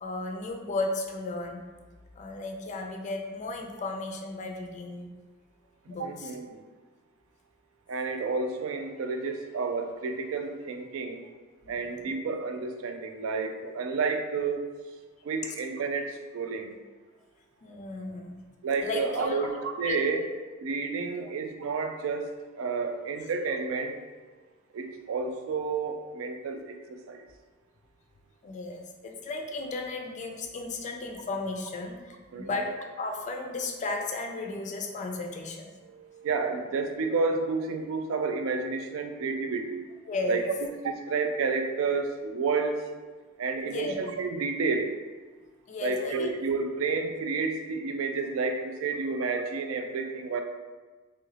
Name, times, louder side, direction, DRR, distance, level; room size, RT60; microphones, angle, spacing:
voice 1, 0.0-1.6 2.2-5.1 5.9-6.3 11.6-12.1 17.6-18.4 18.8-19.5 19.9-20.3 21.2-21.3 28.4-35.7 40.1-40.4 43.6-44.0 45.7-46.3, left 2 dB, 35° left, 2 dB, 0.3 m, -35 dB
voice 2, 6.0-6.6 7.9-11.2 11.7-14.7 15.2-16.7 18.6-20.2 20.6-24.0 24.7-27.2 32.3-32.7 35.9-39.8 40.3-40.4 40.8-42.9 43.4-44.9 45.8-50.4, right 4 dB, 80° right, 5 dB, 0.3 m, -30 dB
3.0 x 2.4 x 3.2 m, 1.3 s
head